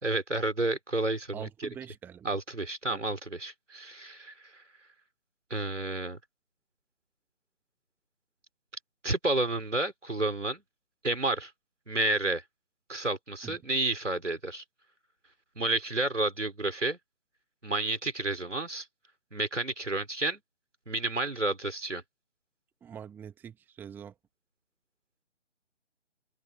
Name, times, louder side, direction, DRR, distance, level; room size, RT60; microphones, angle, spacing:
voice 1, 0.0-1.5 2.2-4.3 5.5-6.2 9.0-10.6 11.0-11.5 11.9-12.4 12.9-14.6 15.6-17.0 17.6-18.9 19.3-20.4 20.9-22.0, right 2 dB, 75° right, 4.2 m, -30 dB
voice 2, 1.3-2.3 2.9-3.0 13.4-13.6 22.8-24.1, right 8 dB, 5° right, 1.9 m, -44 dB
open air
figure-of-eight pair, 145°, 36 cm